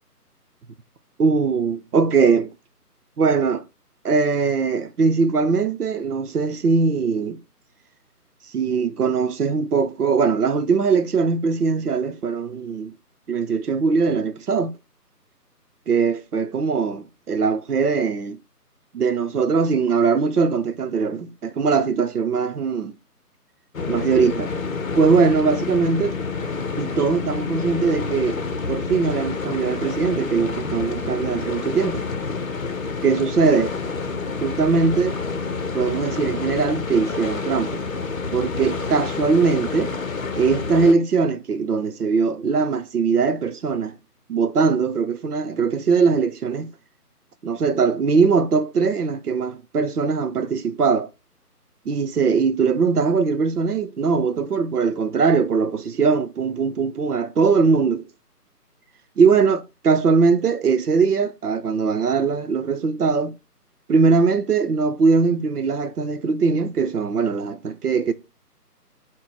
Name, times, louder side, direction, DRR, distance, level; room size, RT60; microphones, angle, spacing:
voice 1, 1.2-2.5 3.2-3.6 4.0-7.4 8.5-12.9 13.3-14.8 15.9-18.4 18.9-22.9 23.9-24.5 24.9-26.2 26.8-28.4 28.7-32.1 33.0-33.7 34.4-35.2 35.7-37.8 38.3-39.9 40.4-43.9 44.3-46.7 47.4-51.1 51.9-58.1 59.2-63.3 63.9-68.1, right 5 dB, 70° right, 0.7 m, -21 dB
sound 1, 23.7-40.9, left 4 dB, 55° left, 0.7 m, -28 dB
3.9 x 2.2 x 4.4 m
figure-of-eight pair, 155°, 48 cm